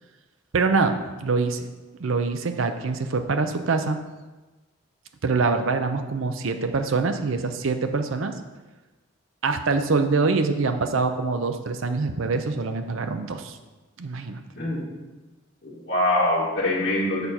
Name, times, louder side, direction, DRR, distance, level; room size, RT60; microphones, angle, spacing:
voice 1, 0.5-1.6 2.0-4.0 5.2-8.3 9.4-13.6 14.0-14.4, right 4 dB, 75° right, 8 dB, 0.6 m, -24 dB
voice 2, 14.6-14.9 15.6-17.3, left 1 dB, 50° left, -7 dB, 1.7 m, -24 dB
6.8 x 4.3 x 5.3 m, 1.2 s
head